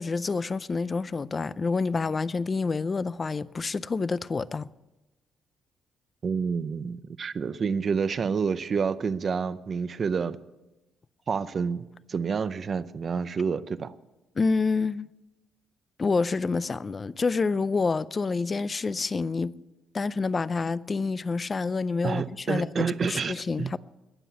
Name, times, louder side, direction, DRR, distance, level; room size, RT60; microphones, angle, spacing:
voice 1, 0.0-4.7 14.4-15.1 16.0-19.5 19.9-23.8, left 4 dB, 25° left, 0.4 m, -28 dB
voice 2, 6.2-10.4 11.3-13.9 22.0-23.7, right 6 dB, 35° right, 0.6 m, -29 dB
21.0 x 7.6 x 8.1 m
cardioid pair, 140°, 0 cm